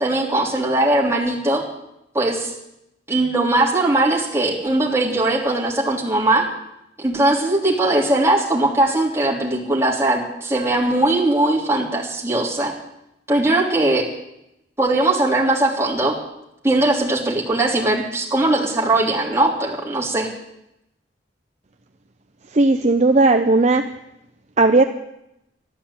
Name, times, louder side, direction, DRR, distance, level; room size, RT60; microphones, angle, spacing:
voice 1, 0.0-1.6 2.1-2.5 3.1-6.5 7.0-12.7 13.3-14.1 14.8-16.1 16.6-20.3, right 2 dB, 15° right, -3 dB, 3.4 m, -19 dB
voice 2, 22.5-23.9 24.6-24.8, right 3 dB, 40° right, 6 dB, 0.7 m, -15 dB
13.0 x 12.5 x 8.6 m, 0.84 s
head